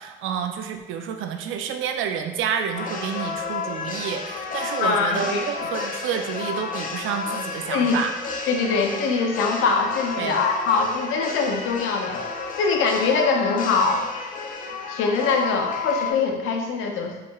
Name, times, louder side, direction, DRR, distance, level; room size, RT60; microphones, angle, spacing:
voice 1, 0.0-8.1 10.2-10.4, right 8 dB, 80° right, 6 dB, 0.4 m, -29 dB
sound 1, 2.7-16.1, left 5 dB, 40° left, 0.5 m, -31 dB
voice 2, 4.8-5.4 7.7-8.0 8.5-14.1 14.9-17.1, left 4 dB, 90° left, 3 dB, 0.5 m, -23 dB
4.7 x 2.8 x 2.3 m, 1.1 s
cardioid pair, 90°, 20 cm